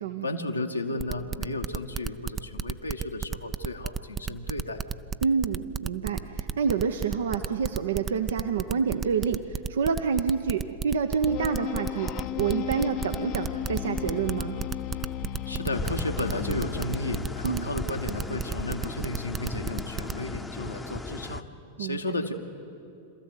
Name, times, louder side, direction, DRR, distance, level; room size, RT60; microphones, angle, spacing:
voice 1, 0.2-4.8 15.5-21.5 21.8-22.3, left 2 dB, 80° left, 3 dB, 1.4 m, -33 dB
sound 1, 1.0-20.2, right 7 dB, 20° right, 0.5 m, -32 dB
voice 2, 5.2-14.6 17.4-17.7 21.8-22.0, right 6 dB, 65° right, 8 dB, 0.8 m, -28 dB
sound 2, 11.3-17.8, left 12 dB, 40° left, 0.7 m, -35 dB
sound 3, 15.7-21.4, left 3 dB, 10° left, 0.8 m, -36 dB
26.5 x 14.0 x 8.1 m, 2.7 s
figure-of-eight pair, 90°, 0 cm